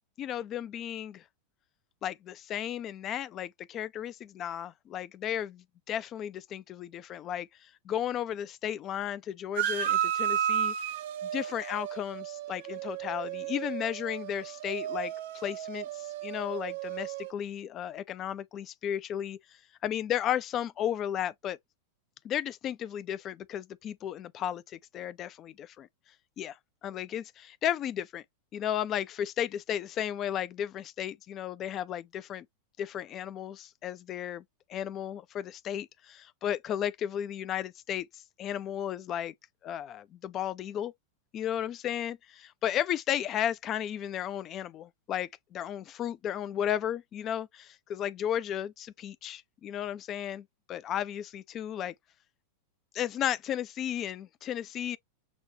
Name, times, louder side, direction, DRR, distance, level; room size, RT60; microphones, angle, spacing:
voice 1, 0.2-1.2 2.0-10.7 11.2-19.4 19.8-21.6 22.2-25.9 26.4-26.6 26.8-28.2 28.5-32.5 32.8-34.4 34.7-39.3 39.6-40.9 41.3-51.9 52.9-55.0, left 10 dB, 30° left, 0.3 m, -34 dB
sound 1, 9.6-17.3, right 10 dB, 55° right, 0.5 m, -33 dB
6.1 x 2.2 x 2.6 m
figure-of-eight pair, 90°, 0 cm